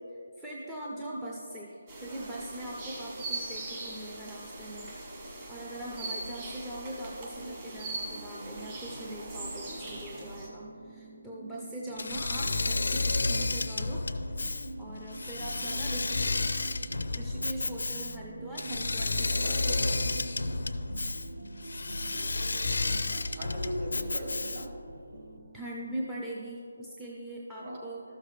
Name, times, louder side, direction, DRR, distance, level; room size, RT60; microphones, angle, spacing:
voice 1, 0.1-14.0 14.8-16.8 17.1-20.2 25.5-28.0, right 1 dB, 5° right, -5 dB, 0.5 m, -41 dB
sound 1, 1.9-10.5, right 2 dB, 25° right, 1.4 m, -40 dB
voice 2, 7.4-7.7 17.4-17.5 19.3-19.8 23.1-24.7 27.6-27.8, equal, 40° right, -2 dB, 1.9 m, -40 dB
sound 2, 8.0-26.0, right 2 dB, 60° right, 0.8 m, -47 dB
Engine / Mechanisms, 12.0-24.9, left 3 dB, 75° left, 0.5 m, -31 dB
13.0 x 6.6 x 3.2 m, 2.8 s
figure-of-eight pair, 170°, 0 cm